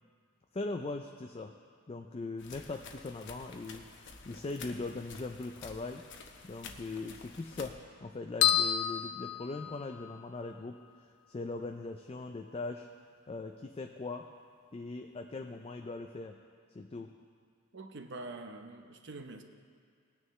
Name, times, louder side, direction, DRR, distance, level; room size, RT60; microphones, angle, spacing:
voice 1, 0.5-1.6 1.9-3.9 4.2-6.0 6.4-12.9 13.3-14.3 14.7-16.4 16.7-17.1, left 3 dB, 30° left, 4 dB, 0.4 m, -40 dB
sound 1, 2.4-7.7, left 4 dB, 60° left, 0.9 m, -50 dB
sound 2, 8.4-10.2, left 10 dB, 85° left, 0.4 m, -29 dB
voice 2, 17.7-19.4, right 2 dB, 55° right, 6 dB, 0.8 m, -45 dB
19.0 x 9.5 x 3.2 m, 2.2 s
head